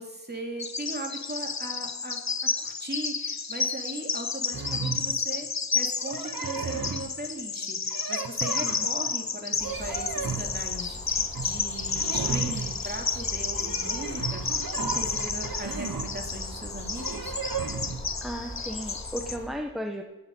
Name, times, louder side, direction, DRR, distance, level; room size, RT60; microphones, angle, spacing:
voice 1, 0.0-2.2 2.6-5.5 5.7-14.4 14.7-17.3, right 1 dB, 25° right, 1 dB, 2.8 m, -38 dB
Bird vocalization bird call bird song, 0.6-19.4, left 5 dB, 50° left, 0.8 m, -31 dB
sound 1, 4.5-5.2 6.0-7.1 7.9-9.1 9.5-10.5 11.1-11.5 11.8-12.8 13.6-16.1 17.0-18.0, right 5 dB, 65° right, 1.1 m, -34 dB
sound 2, 9.6-19.5, equal, 20° left, 3.6 m, -41 dB
voice 2, 18.2-20.0, equal, ahead, 3 dB, 1.1 m, -34 dB
19.5 x 8.7 x 5.5 m, 1.2 s
wide cardioid pair, 55°, 36 cm